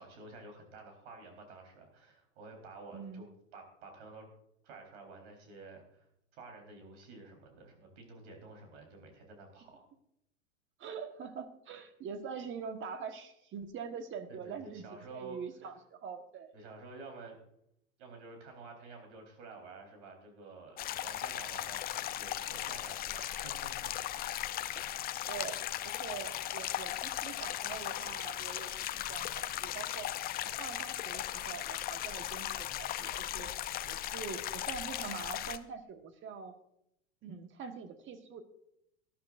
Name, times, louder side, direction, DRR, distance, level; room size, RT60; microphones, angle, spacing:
voice 1, 0.0-3.3 3.5-4.3 4.6-6.1 6.3-9.9 14.3-15.4 16.5-17.4 18.0-24.4, right 3 dB, 65° right, 3 dB, 4.0 m, -51 dB
voice 2, 2.9-3.3 10.8-14.8 15.1-16.5 24.7-25.0 25.2-25.6 25.8-30.1 30.4-33.5 33.8-36.5 37.2-38.4, right 6 dB, 30° right, 8 dB, 1.4 m, -44 dB
sound 1, 20.8-35.6, left 12 dB, 25° left, 0.5 m, -37 dB
18.5 x 11.5 x 2.5 m, 0.77 s
hypercardioid pair, 100°, 38 cm